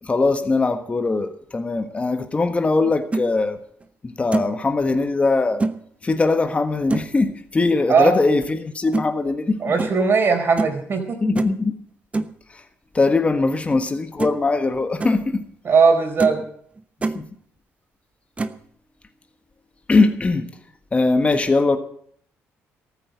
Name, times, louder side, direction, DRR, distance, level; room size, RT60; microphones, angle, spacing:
voice 1, 0.0-3.6 4.0-5.6 6.0-9.7 11.2-11.7 12.5-12.6 12.9-15.4 17.1-17.3 19.9-20.5 20.9-21.8, left 3 dB, 25° left, 1.4 m, -21 dB
sound 1, 2.9-3.3 3.8-3.9 4.3-4.6 5.6-5.8 6.9-7.2 8.9-9.1 9.8-10.0 10.6-10.8 11.4-11.6 12.1-12.3 13.7-13.8 14.2-14.5 14.8-15.2 15.7-15.8 16.2-16.5 16.8-17.2 18.4-18.6, right 3 dB, 25° right, 1.0 m, -25 dB
voice 2, 9.6-11.2 15.6-16.4, right 5 dB, 45° right, 4.3 m, -18 dB
14.5 x 9.0 x 7.8 m
cardioid pair, 90°, 5 cm